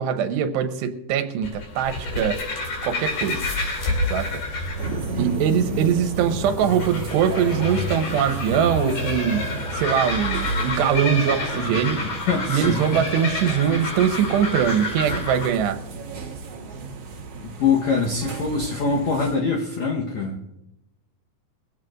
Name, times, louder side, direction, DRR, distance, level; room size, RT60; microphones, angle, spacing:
voice 1, 0.0-2.4 2.8-3.4 4.1-4.3 5.2-9.4 9.7-12.0 12.5-15.8, right 8 dB, 85° right, 8 dB, 3.0 m, -22 dB
sound 1, 1.4-15.5, left 2 dB, 60° left, 4.4 m, -30 dB
sound 2, 4.8-19.4, right 3 dB, 65° right, 1.6 m, -32 dB
voice 2, 5.4-5.8 12.0-12.8 17.4-20.4, left 5 dB, 80° left, -1 dB, 1.6 m, -24 dB
23.0 x 15.5 x 2.5 m, 0.89 s
omnidirectional pair, 4.8 m